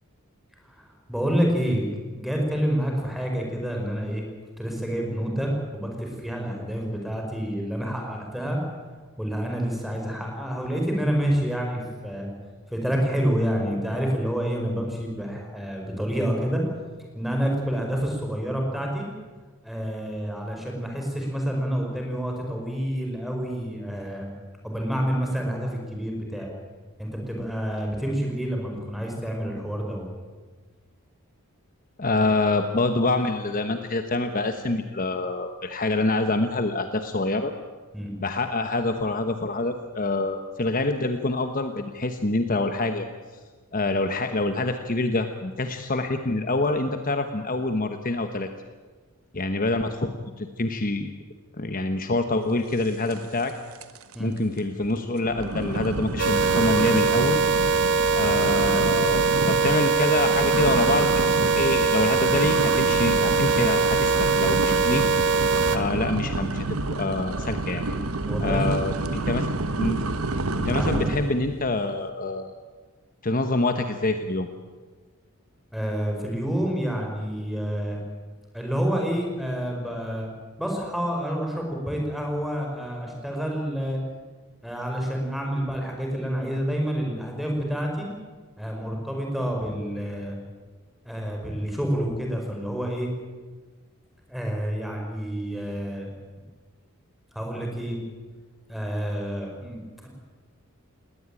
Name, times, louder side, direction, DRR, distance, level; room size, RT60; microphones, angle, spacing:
voice 1, 0.6-1.8 2.2-4.3 4.6-8.6 9.2-12.3 12.7-16.6 17.1-19.1 19.6-24.3 24.6-26.5 27.0-30.0 37.9-38.1 54.1-54.3 68.3-68.8 70.7-71.1 75.7-78.0 78.5-80.3 80.6-84.0 84.6-88.1 88.6-90.4 91.0-93.1 94.3-96.1 97.3-98.0 98.7-100.1, equal, ahead, 1 dB, 5.3 m, -28 dB
voice 2, 32.0-37.5 38.2-43.1 43.7-48.5 49.3-51.1 51.6-53.5 54.2-57.4 58.1-65.0 65.4-67.8 68.4-69.5 69.8-70.0 70.6-72.5 73.2-74.5, left 2 dB, 40° left, 7 dB, 1.1 m, -26 dB
sound 1, 53.1-53.5 53.7-54.1 54.6-54.7 55.2-71.4, right 2 dB, 80° right, 1.3 m, -29 dB
sound 2, 56.2-65.8, right 4 dB, 55° right, 1.6 m, -22 dB
20.0 x 18.0 x 9.1 m, 1.4 s
head